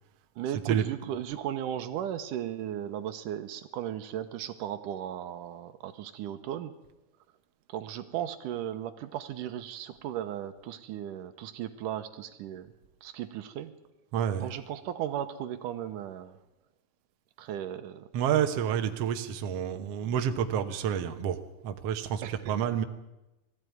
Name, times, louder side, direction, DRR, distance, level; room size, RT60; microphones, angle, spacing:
voice 1, 0.4-6.7 7.7-12.7 13.0-13.7 14.4-16.4 17.4-18.1 22.2-22.7, right 11 dB, 80° right, 10 dB, 2.4 m, -36 dB
voice 2, 14.1-14.5 18.1-21.4 21.6-22.8, right 9 dB, 60° right, 7 dB, 1.9 m, -29 dB
19.5 x 14.0 x 9.4 m, 0.98 s
omnidirectional pair, 3.8 m